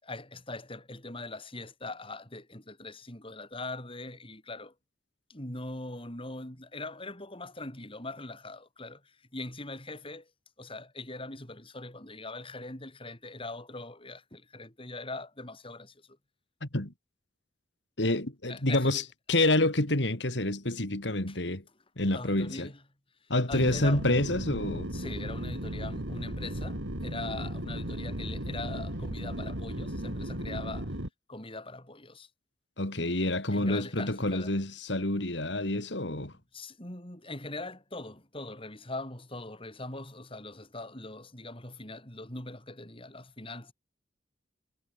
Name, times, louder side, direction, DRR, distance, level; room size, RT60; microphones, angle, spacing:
voice 1, 0.0-4.7 5.3-10.3 10.6-16.2 18.5-19.0 21.3-21.4 22.1-22.8 23.2-24.0 24.9-31.0 31.3-32.3 33.5-34.6 36.1-43.7, left 2 dB, 30° left, 6.2 m, -41 dB
voice 2, 16.6-16.9 18.0-19.0 19.3-21.6 22.0-22.7 23.3-24.9 32.8-36.3, left 2 dB, 65° left, 3.2 m, -28 dB
sound 1, 23.5-31.1, right 1 dB, 90° right, 5.8 m, -36 dB
head